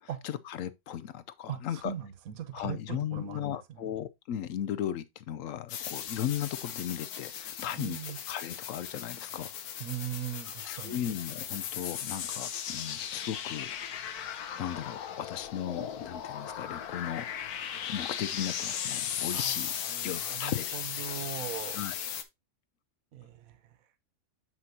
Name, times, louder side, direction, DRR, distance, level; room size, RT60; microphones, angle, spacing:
voice 1, 0.0-1.9 2.5-8.0 8.3-9.5 10.6-13.7 14.0-17.3 17.9-19.7 20.0-20.6 21.8-21.9, left 10 dB, 70° left, 0.9 m, -36 dB
voice 2, 1.5-3.9 7.8-8.2 9.8-11.0 19.3-21.8 23.1-23.8, right 10 dB, 70° right, 1.3 m, -40 dB
sound 1, 5.7-22.2, left 9 dB, 85° left, 1.3 m, -37 dB
7.6 x 5.9 x 2.7 m
omnidirectional pair, 1.6 m